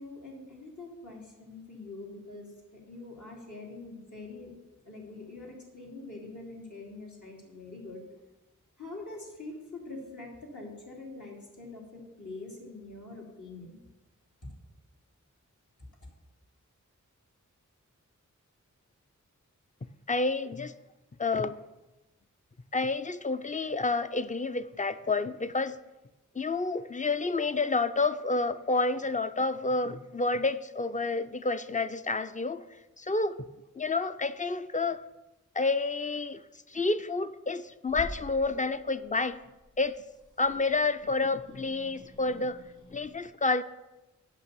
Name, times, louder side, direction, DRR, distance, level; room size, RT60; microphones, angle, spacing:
voice 1, 0.0-4.5 4.8-8.0 8.8-13.8 15.8-15.9, left 2 dB, 65° left, -3 dB, 3.0 m, -44 dB
voice 2, 20.1-20.7 21.2-21.6 22.7-25.8 26.4-32.6 33.0-33.4 33.7-35.0 35.5-36.4 36.7-39.4 39.8-40.0 40.4-42.6 42.9-43.6, left 3 dB, 25° left, 12 dB, 0.5 m, -29 dB
Growling / Hiss, 37.9-43.1, left 1 dB, 85° left, 3.0 m, -48 dB
8.2 x 6.0 x 7.0 m, 1.0 s
wide cardioid pair, 60°, 31 cm